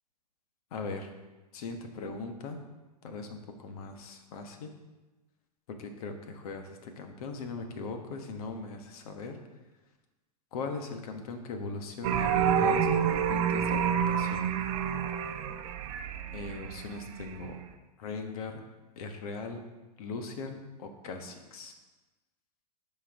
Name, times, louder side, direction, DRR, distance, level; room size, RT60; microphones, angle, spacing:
voice 1, 0.7-1.1 1.5-2.6 3.0-4.7 5.8-9.4 10.5-14.5 16.3-17.6 18.0-18.5 19.0-19.6 20.0-21.7, left 4 dB, 60° left, 5 dB, 1.3 m, -39 dB
sound 1, 12.0-17.6, right 8 dB, 50° right, 0.7 m, -28 dB
12.5 x 4.7 x 3.6 m, 1.1 s
hypercardioid pair, 110°, 21 cm